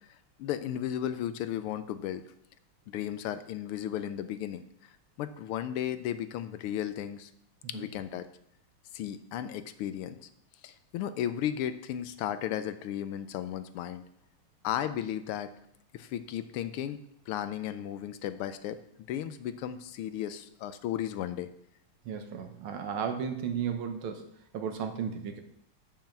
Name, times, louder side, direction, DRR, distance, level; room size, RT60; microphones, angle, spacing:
voice 1, 0.4-2.2 2.9-4.6 5.2-7.3 7.7-8.3 8.9-10.3 10.6-14.0 14.6-15.5 15.9-17.0 17.3-18.8 19.1-21.5, left 11 dB, 85° left, 12 dB, 1.6 m, -34 dB
voice 2, 22.1-24.2 24.5-25.4, right 7 dB, 75° right, 7 dB, 1.8 m, -34 dB
6.9 x 5.7 x 7.3 m, 0.71 s
omnidirectional pair, 2.4 m